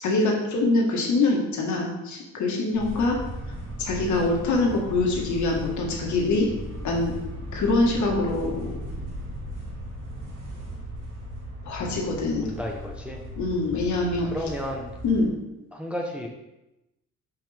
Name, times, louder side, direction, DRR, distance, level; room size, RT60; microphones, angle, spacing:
voice 1, 0.0-3.2 3.8-6.5 6.8-7.1 7.5-8.8 11.6-12.4 13.4-14.3 15.0-15.3, left 2 dB, 70° left, 0 dB, 1.6 m, -24 dB
sound 1, 2.7-15.3, equal, 90° right, 2.4 m, -37 dB
voice 2, 12.4-13.2 14.2-14.9 15.7-16.3, equal, 5° right, 0 dB, 0.7 m, -32 dB
5.9 x 5.6 x 3.4 m, 0.97 s
cardioid pair, 90°, 30 cm